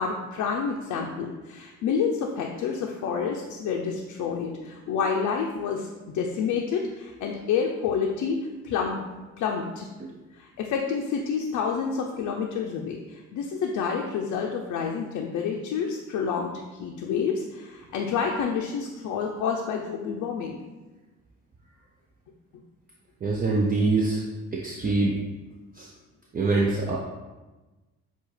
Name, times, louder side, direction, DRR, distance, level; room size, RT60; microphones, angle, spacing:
voice 1, 0.0-8.4 8.6-9.0 9.4-9.9 10.3-20.6, left 6 dB, 75° left, 1 dB, 0.5 m, -28 dB
voice 2, 23.2-24.2 24.5-25.2 25.7-25.9 26.3-27.0, right 3 dB, 30° right, -2 dB, 0.5 m, -24 dB
6.8 x 2.4 x 3.2 m, 1.2 s
cardioid pair, 90°, 30 cm